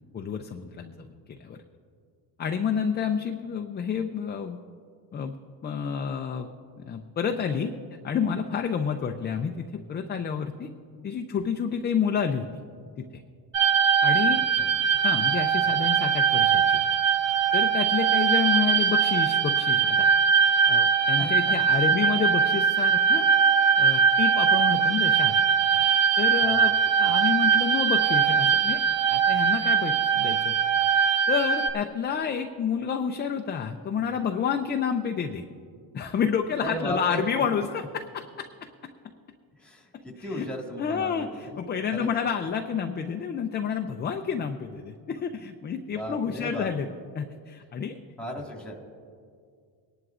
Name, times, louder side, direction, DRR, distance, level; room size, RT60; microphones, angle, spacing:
voice 1, 0.1-1.6 2.4-4.6 5.1-5.3 5.6-6.5 6.8-7.7 8.0-10.7 11.0-12.5 13.0-13.2 14.0-14.4 15.0-16.8 17.5-20.1 20.7-23.3 23.8-25.4 26.2-26.7 27.0-30.5 31.3-35.4 35.9-38.5 40.2-40.5 40.8-46.9 47.2-48.0, left 7 dB, 25° left, 4 dB, 0.3 m, -29 dB
sound 1, 13.5-31.7, right 6 dB, 35° right, 0.8 m, -22 dB
voice 2, 36.6-37.2 39.6-41.5 41.9-42.1 45.9-46.7 48.2-48.7, equal, ahead, 1 dB, 1.6 m, -35 dB
24.0 x 11.0 x 2.5 m, 2.2 s
cardioid pair, 140°, 47 cm